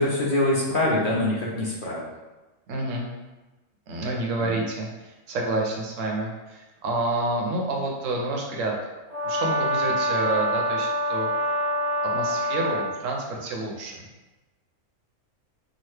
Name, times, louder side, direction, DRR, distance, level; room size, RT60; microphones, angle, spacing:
voice 1, 0.0-2.1 4.4-4.6, left 1 dB, 55° left, -6 dB, 0.6 m, -24 dB
voice 2, 2.7-3.1 3.9-8.7 9.2-11.3 12.1-14.0, right 2 dB, 75° right, 0 dB, 1.0 m, -29 dB
Brass instrument, 9.1-13.0, equal, 30° right, 0.9 m, -26 dB
2.9 x 2.4 x 3.2 m, 1.1 s
omnidirectional pair, 1.4 m